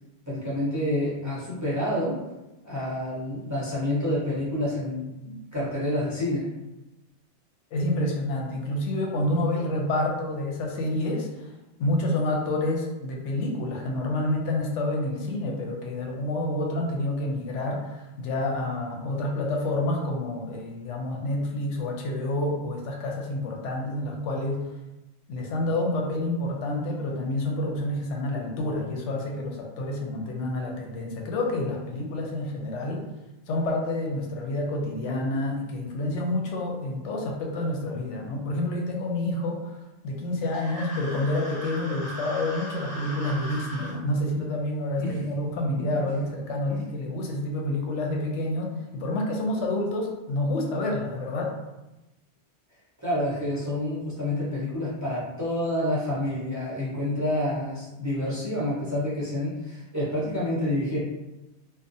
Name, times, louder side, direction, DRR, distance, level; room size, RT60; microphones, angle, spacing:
voice 1, 0.3-2.2 2.6-6.5 45.0-45.2 45.8-45.9 46.7-46.8 53.0-61.0, left 1 dB, 20° right, -9 dB, 0.5 m, -28 dB
voice 2, 7.7-11.5 11.8-24.6 25.3-33.0 33.5-39.8 40.0-51.5, left 1 dB, 90° left, 0 dB, 0.9 m, -28 dB
sound 1, 40.4-43.9, equal, 15° left, 1.4 m, -38 dB
2.5 x 2.0 x 2.6 m, 1.0 s
omnidirectional pair, 1.2 m